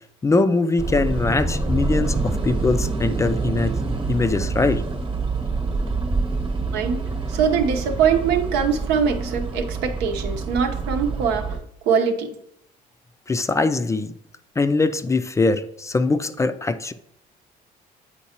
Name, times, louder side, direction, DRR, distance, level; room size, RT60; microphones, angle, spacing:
voice 1, 0.2-3.8 4.1-4.8 13.3-14.1 14.6-16.9, left 3 dB, 20° left, 11 dB, 0.3 m, -22 dB
sound 1, 0.8-11.6, right 3 dB, 30° right, 1.0 m, -26 dB
voice 2, 7.3-11.6 11.8-12.4, right 6 dB, 90° right, 5 dB, 0.8 m, -22 dB
8.3 x 4.5 x 2.9 m, 0.73 s
cardioid pair, 110°, 17 cm